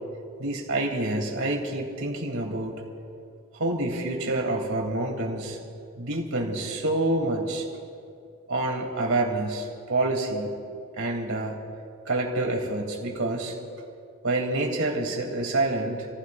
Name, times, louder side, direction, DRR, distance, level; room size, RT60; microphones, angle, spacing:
voice 1, 0.4-2.7 3.5-5.6 6.0-7.7 8.5-10.5 10.9-11.6 12.0-13.6 14.2-16.1, right 2 dB, 75° right, -1 dB, 3.0 m, -27 dB
30.0 x 15.5 x 2.6 m, 2.4 s
head